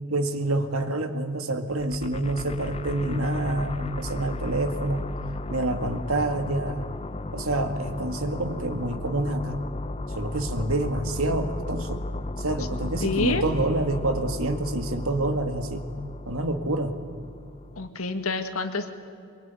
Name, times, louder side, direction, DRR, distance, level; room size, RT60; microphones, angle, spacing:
voice 1, 0.1-5.1 5.5-6.9 7.3-9.6 10.2-12.0 12.4-15.9 16.3-16.9, right 2 dB, 75° right, 7 dB, 2.0 m, -27 dB
sound 1, 1.7-17.9, left 2 dB, 30° left, 0.7 m, -35 dB
voice 2, 13.0-13.4 17.8-18.9, left 3 dB, 80° left, 7 dB, 2.0 m, -27 dB
23.5 x 21.5 x 9.7 m, 2.3 s
head